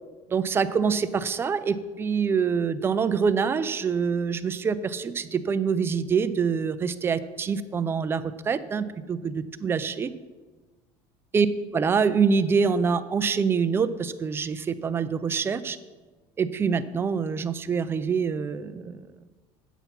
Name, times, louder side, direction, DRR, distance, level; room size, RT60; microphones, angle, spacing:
voice 1, 0.3-10.1 11.3-11.5 11.7-15.8 16.4-19.0, right 6 dB, 20° right, 12 dB, 0.4 m, -25 dB
8.1 x 7.3 x 5.8 m, 1.3 s
cardioid pair, 145°, 12 cm